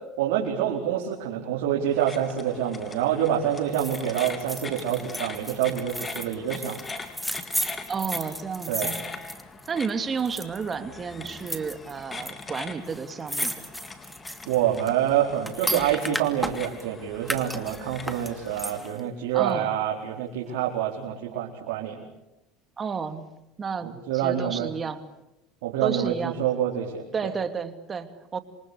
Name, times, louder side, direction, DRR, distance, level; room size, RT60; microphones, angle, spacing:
voice 1, 0.2-6.8 8.7-8.9 14.5-22.0 23.8-24.7 25.6-27.3, right 10 dB, 85° right, -2 dB, 4.5 m, -27 dB
sound 1, 1.9-18.8, left 3 dB, 20° left, 3.6 m, -41 dB
sound 2, 3.7-9.9 10.2-10.7 11.3-12.3 12.6-12.7 12.9-16.8 17.2-19.0 19.4-19.5, equal, ahead, 2.7 m, -34 dB
voice 2, 7.9-9.0 9.7-13.7 19.3-19.8 22.8-23.3 23.6-25.0 25.8-26.4 27.1-28.4, right 5 dB, 25° right, 9 dB, 2.7 m, -32 dB
28.0 x 24.0 x 8.4 m, 0.91 s
supercardioid pair, 120°, 0 cm